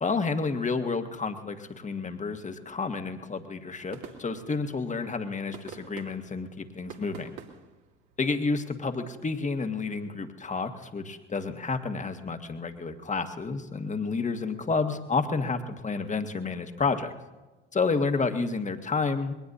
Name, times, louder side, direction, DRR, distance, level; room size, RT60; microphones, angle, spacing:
voice 1, 0.0-7.4 8.2-17.1 17.7-19.3, left 4 dB, 20° left, 7 dB, 1.7 m, -30 dB
sound 1, 3.9-8.9, right 6 dB, 60° right, 2.6 m, -49 dB
22.0 x 19.0 x 2.7 m, 1.1 s
figure-of-eight pair, 60°, 33 cm